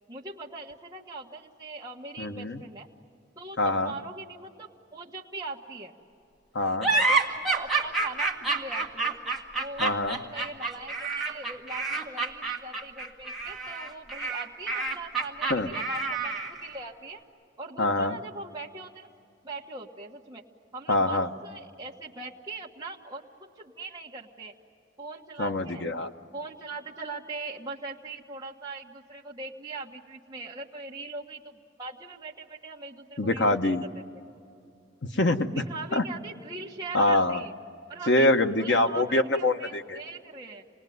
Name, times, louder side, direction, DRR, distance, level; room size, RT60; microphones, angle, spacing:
voice 1, 0.1-2.9 3.4-5.9 6.9-9.2 9.5-17.2 17.6-19.1 19.4-20.4 20.7-24.5 25.0-25.9 26.3-34.2 35.5-37.5 37.9-38.3 38.6-40.6, right 3 dB, 20° right, -4 dB, 1.4 m, -41 dB
voice 2, 2.2-2.6 3.6-3.9 6.5-6.9 9.8-10.2 15.5-15.7 17.8-18.2 20.9-21.3 25.4-26.1 33.2-33.8 35.1-35.6 35.9-36.0 36.9-37.4 38.1-40.0, left 2 dB, 65° left, 6 dB, 1.1 m, -24 dB
sound 1, 6.8-16.6, right 3 dB, ahead, 1.8 m, -28 dB
28.0 x 19.5 x 9.4 m, 2.5 s
head